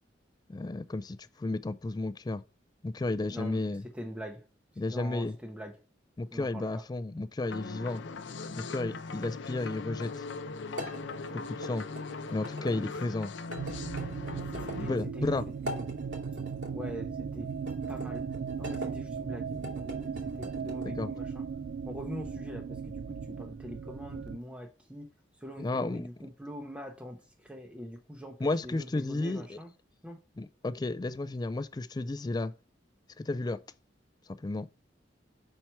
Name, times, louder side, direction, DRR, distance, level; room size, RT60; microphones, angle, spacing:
voice 1, 0.5-2.4 2.8-3.8 4.8-5.4 6.2-8.0 8.6-10.2 11.3-11.9 12.3-13.3 14.8-15.5 20.8-21.1 25.6-26.1 28.4-29.6 30.4-32.5 33.2-33.6 34.4-34.7, left 2 dB, 20° left, 0.3 m, -33 dB
voice 2, 3.3-3.6 3.9-4.4 4.9-5.8 6.3-6.8 12.7-12.9 14.6-15.9 16.7-17.5 17.9-18.3 18.6-21.4 21.8-25.1 25.4-29.7 30.0-30.2, equal, 5° right, 0.7 m, -43 dB
sound 1, 7.5-15.0, left 4 dB, 80° left, 0.6 m, -40 dB
sound 2, 10.8-12.8 13.5-14.8 15.5-16.7 17.6-18.9 19.5-20.9, equal, 80° right, 2.7 m, -43 dB
sound 3, 13.6-24.4, right 6 dB, 65° right, 0.3 m, -37 dB
5.7 x 4.4 x 4.5 m
head